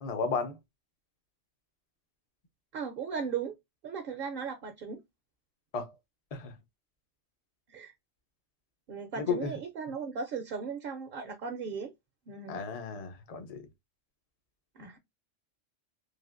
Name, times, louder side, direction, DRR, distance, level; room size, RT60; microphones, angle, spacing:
voice 1, 0.0-0.6 5.7-5.9 6.3-6.5 9.2-9.5 12.5-13.6, left 5 dB, 45° left, 0.5 m, -33 dB
voice 2, 2.7-3.5 3.8-5.0 7.7-7.9 8.9-11.9 12.3-12.6 14.8-15.0, right 6 dB, 60° right, 0.6 m, -37 dB
3.3 x 2.4 x 2.4 m
omnidirectional pair, 1.3 m